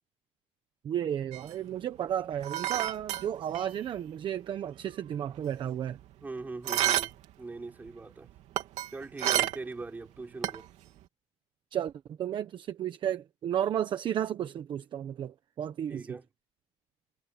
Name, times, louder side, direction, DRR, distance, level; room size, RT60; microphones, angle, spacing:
voice 1, 0.8-6.0 11.7-16.2, right 10 dB, 45° right, 1.1 m, -33 dB
sound 1, 1.3-4.0 4.2-4.3 4.7-6.2 6.6-7.3 7.6-9.9 10.2-10.9, right 13 dB, 75° right, 3.1 m, -31 dB
voice 2, 6.2-8.3 8.9-10.7 15.9-16.3, right 3 dB, 15° right, 5.7 m, -41 dB
cardioid pair, 175°, 12 cm